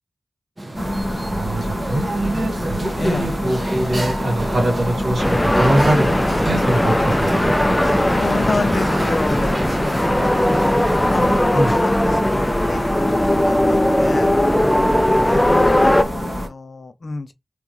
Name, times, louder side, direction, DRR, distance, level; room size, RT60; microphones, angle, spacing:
sound 1, 0.6-11.4, right 1 dB, 30° right, 1.5 m, -31 dB
sound 2, 0.7-16.5, equal, 5° right, 1.9 m, -26 dB
voice 1, 1.2-7.6 11.5-11.7, right 1 dB, 70° right, 2.4 m, -23 dB
voice 2, 3.0-3.3 8.1-10.8 11.1-14.3 15.0-17.3, left 3 dB, 55° left, 0.6 m, -29 dB
sound 3, 5.2-16.0, left 1 dB, 15° left, 0.4 m, -19 dB
3.6 x 3.5 x 3.0 m
wide cardioid pair, 75°, 0 cm